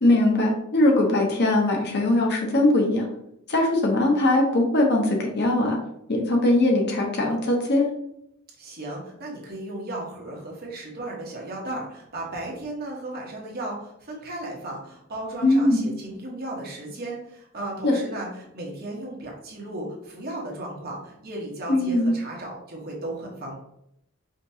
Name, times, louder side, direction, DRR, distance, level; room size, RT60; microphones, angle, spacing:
voice 1, 0.0-3.1 3.5-5.8 6.1-7.9 15.4-15.8 17.8-17.9 21.7-22.1, left 1 dB, 50° left, 1 dB, 0.9 m, -21 dB
voice 2, 8.6-23.6, right 1 dB, 45° right, -2 dB, 1.2 m, -35 dB
5.1 x 3.0 x 2.7 m, 0.77 s
head